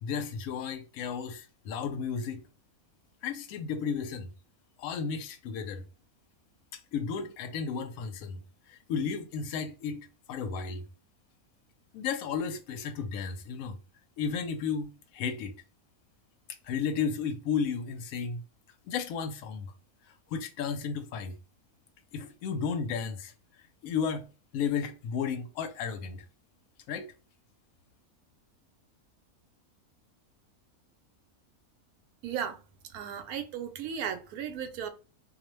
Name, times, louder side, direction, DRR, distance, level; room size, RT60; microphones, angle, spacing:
voice 1, 0.0-2.4 3.2-4.3 4.8-5.8 6.7-8.4 8.7-10.9 11.9-13.8 14.2-15.5 16.6-18.4 18.9-19.7 20.1-21.4 22.1-23.3 23.8-26.2 26.9-27.1, left 6 dB, 75° left, 1.0 m, -33 dB
voice 2, 32.2-32.6 32.9-34.9, right 8 dB, 85° right, 1.1 m, -35 dB
2.6 x 2.1 x 2.9 m
omnidirectional pair, 1.5 m